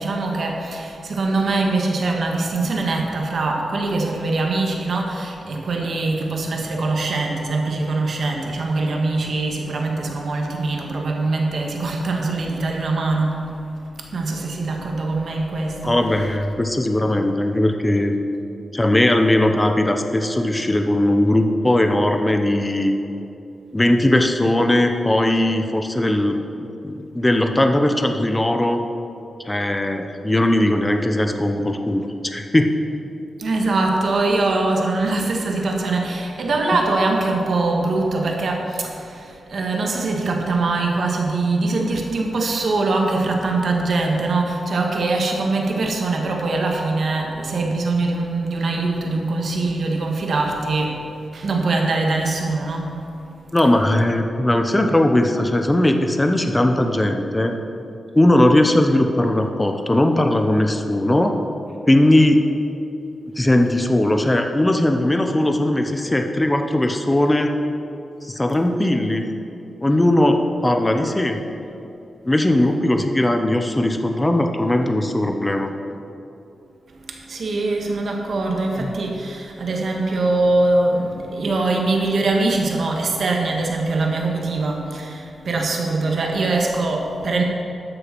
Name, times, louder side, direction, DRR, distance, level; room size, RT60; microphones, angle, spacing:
voice 1, 0.0-13.7 14.0-16.0 33.4-53.0 77.1-87.4, right 3 dB, 65° right, 1 dB, 1.6 m, -22 dB
voice 2, 15.8-18.1 18.7-22.9 23.7-28.8 29.5-32.7 53.5-57.6 58.1-61.4 61.9-62.4 63.4-67.6 68.2-69.2 69.8-71.4 72.2-75.7 78.8-78.9, left 1 dB, 15° left, 5 dB, 0.8 m, -19 dB
12.5 x 6.8 x 6.0 m, 2.8 s
wide cardioid pair, 110°, 0 cm